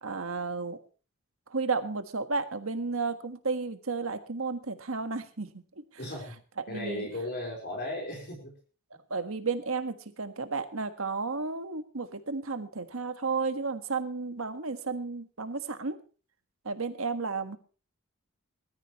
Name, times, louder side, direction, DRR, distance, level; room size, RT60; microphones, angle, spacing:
voice 1, 0.0-0.8 1.5-5.6 6.6-7.1 9.1-16.0 16.6-17.6, right 4 dB, 75° right, 9 dB, 1.5 m, -33 dB
voice 2, 6.0-6.4 6.7-8.5, left 1 dB, 50° left, 0 dB, 4.3 m, -36 dB
20.5 x 13.5 x 3.1 m, 0.36 s
head